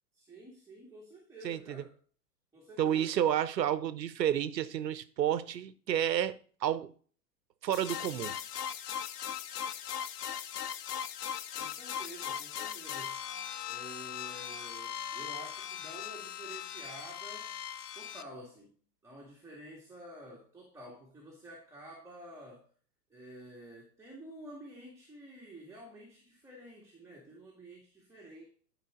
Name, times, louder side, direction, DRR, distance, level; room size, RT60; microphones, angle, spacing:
voice 1, 0.1-1.9 2.5-3.1 11.6-13.2 13.7-17.6 17.9-18.7 19.0-22.7 23.1-28.5, right 1 dB, 5° right, -3 dB, 2.0 m, -50 dB
voice 2, 1.4-1.8 2.8-6.9 7.6-8.3, right 10 dB, 75° right, 14 dB, 1.0 m, -30 dB
sound 1, 7.7-18.2, left 9 dB, 65° left, 0.8 m, -39 dB
11.5 x 5.2 x 3.7 m, 0.44 s
hypercardioid pair, 115°, 50 cm